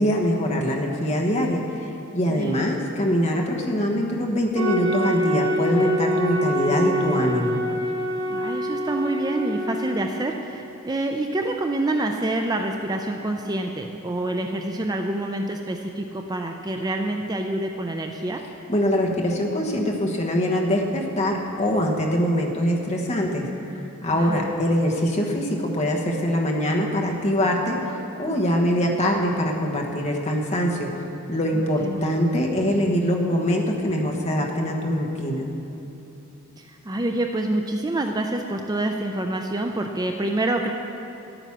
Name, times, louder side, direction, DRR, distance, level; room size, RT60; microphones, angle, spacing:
voice 1, 0.0-7.6 18.7-27.8 28.2-30.9 31.3-35.5, equal, 30° left, 0 dB, 1.2 m, -23 dB
sound 1, 4.6-9.9, equal, 75° right, 1.7 m, -25 dB
voice 2, 8.3-18.4 24.1-24.5 31.5-32.0 36.6-40.7, right 1 dB, 15° right, 3 dB, 0.4 m, -27 dB
11.5 x 9.0 x 5.9 m, 2.9 s
head